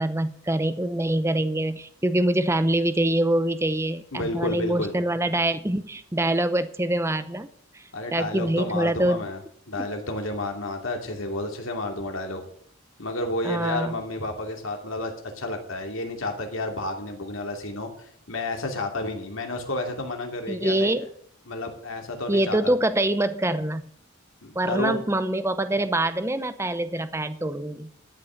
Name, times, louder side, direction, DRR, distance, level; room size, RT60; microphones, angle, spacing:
voice 1, 0.0-7.5 7.7-7.8 8.1-9.2 9.8-9.9 13.4-14.0 20.5-21.1 22.3-23.9 24.5-27.9, right 1 dB, 10° right, 12 dB, 0.6 m, -25 dB
voice 2, 4.1-4.9 7.9-9.4 9.7-12.4 13.0-20.9 21.5-22.7 24.4-25.1, left 2 dB, 70° left, 3 dB, 2.7 m, -31 dB
13.5 x 6.1 x 9.1 m, 0.64 s
head